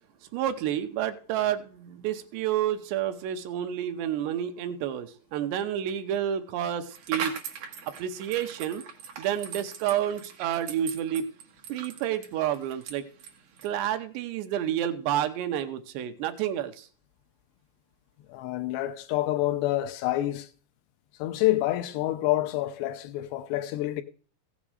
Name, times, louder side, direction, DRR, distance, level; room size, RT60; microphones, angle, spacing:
voice 1, 0.3-7.3 8.0-8.8 9.2-11.3 11.7-13.0 13.6-16.9, right 10 dB, 80° right, 2.9 m, -29 dB
sound 1, 6.8-13.8, right 7 dB, 60° right, 2.2 m, -40 dB
voice 2, 18.3-20.5 21.2-24.0, left 15 dB, 80° left, 2.7 m, -27 dB
15.5 x 7.4 x 4.8 m
omnidirectional pair, 5.1 m